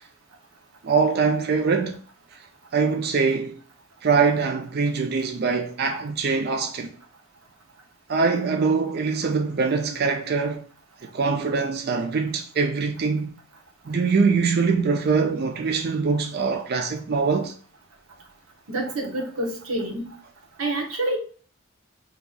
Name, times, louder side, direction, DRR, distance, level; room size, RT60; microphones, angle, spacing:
voice 1, 0.8-2.0 2.7-3.5 4.0-6.9 8.1-10.6 11.1-13.3 13.9-17.5, right 5 dB, 50° right, 0.4 m, -23 dB
voice 2, 18.7-20.1 20.6-21.2, right 1 dB, 85° right, 1.0 m, -27 dB
2.9 x 2.4 x 3.7 m
head